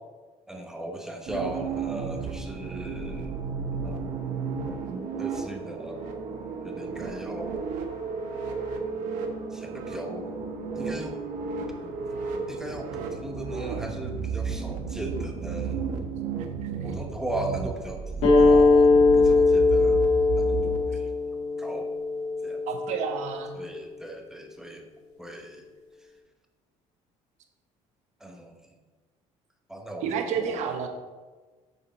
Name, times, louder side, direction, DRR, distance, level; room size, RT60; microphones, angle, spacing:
voice 1, 0.5-3.3 3.8-4.0 5.2-6.0 6.6-7.7 9.5-10.4 10.8-11.2 11.8-12.0 12.5-15.9 16.8-20.0 20.4-21.9 22.4-22.6 23.6-24.9 25.2-25.6 28.2-28.5 29.7-30.8, right 1 dB, 5° right, 2 dB, 0.9 m, -38 dB
sound 1, 1.3-20.8, right 5 dB, 80° right, 1.2 m, -33 dB
voice 2, 16.4-16.7 22.7-23.5 30.0-30.9, right 7 dB, 65° right, 5 dB, 1.2 m, -30 dB
sound 2, 18.2-23.4, left 3 dB, 60° left, 2.4 m, -21 dB
8.5 x 6.7 x 4.1 m, 1.3 s
cardioid pair, 155°, 13 cm